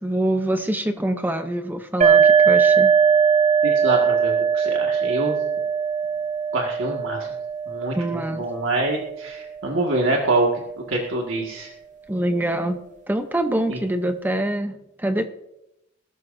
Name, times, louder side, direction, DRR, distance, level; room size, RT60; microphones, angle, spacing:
voice 1, 0.0-2.9 8.0-8.4 12.1-12.8 13.1-15.3, right 1 dB, 10° right, 8 dB, 0.7 m, -25 dB
sound 1, 2.0-9.5, right 6 dB, 40° right, 0.8 m, -20 dB
voice 2, 3.6-5.3 6.5-7.3 7.7-10.5 10.9-11.7 13.7-13.8, right 2 dB, 75° right, -1 dB, 1.8 m, -25 dB
21.0 x 12.5 x 2.6 m, 0.86 s
head